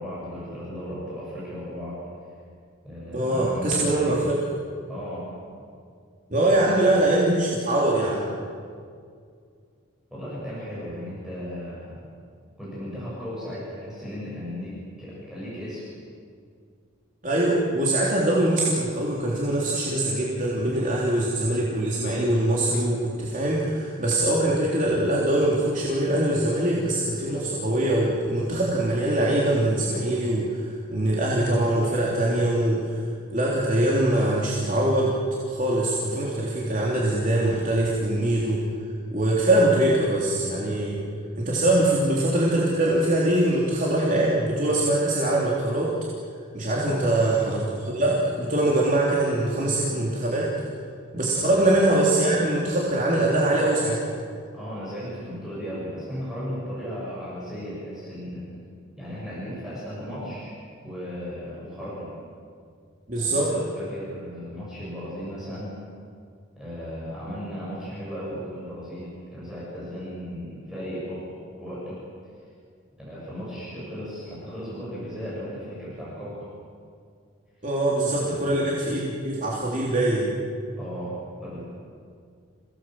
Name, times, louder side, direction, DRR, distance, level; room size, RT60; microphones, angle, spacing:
voice 1, 0.0-2.0 2.8-4.4 4.9-5.4 6.5-6.8 10.1-12.0 12.6-15.8 46.7-47.1 51.3-51.5 54.5-58.5 59.0-60.5 60.8-62.2 63.2-65.8 66.6-71.3 71.6-72.0 73.0-76.5 78.1-78.6 80.8-81.6, equal, 5° right, -8 dB, 7.1 m, -36 dB
voice 2, 3.1-4.4 6.3-8.3 17.2-33.0 33.3-35.1 35.4-38.6 39.1-41.0 41.3-45.9 46.5-50.5 51.1-54.0 63.1-63.5 77.6-80.3, right 1 dB, 40° right, -5 dB, 3.4 m, -23 dB
29.0 x 18.0 x 7.8 m, 2.2 s
head